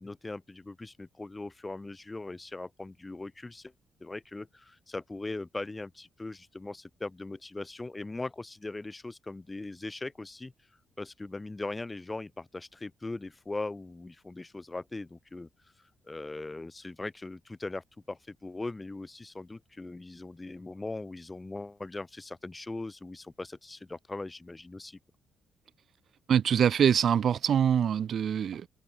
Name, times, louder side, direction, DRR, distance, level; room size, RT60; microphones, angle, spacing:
voice 1, 0.0-3.7 4.0-10.5 11.0-15.5 16.0-25.0, left 2 dB, 20° left, 7.7 m, -40 dB
voice 2, 26.3-28.7, right 8 dB, 60° right, 3.0 m, -24 dB
open air
cardioid pair, 90°, 0 cm